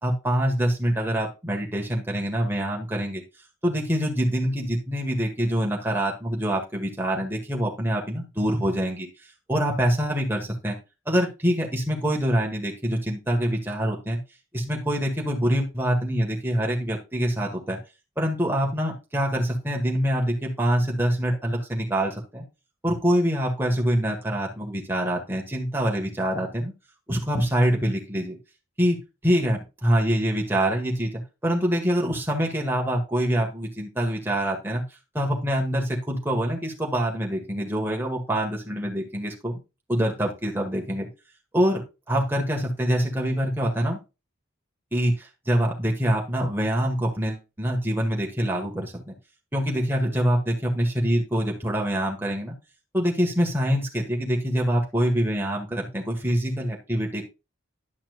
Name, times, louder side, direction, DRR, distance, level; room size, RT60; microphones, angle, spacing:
voice 1, 0.0-3.2 3.6-9.1 9.5-10.8 11.1-14.2 14.5-17.8 18.2-22.4 22.8-26.7 27.1-28.4 28.8-29.0 29.2-34.8 35.1-39.6 39.9-41.1 41.5-41.8 42.1-44.0 44.9-49.1 49.5-52.5 52.9-57.2, equal, 10° right, -1 dB, 1.7 m, -25 dB
11.0 x 5.8 x 2.5 m, 0.27 s
head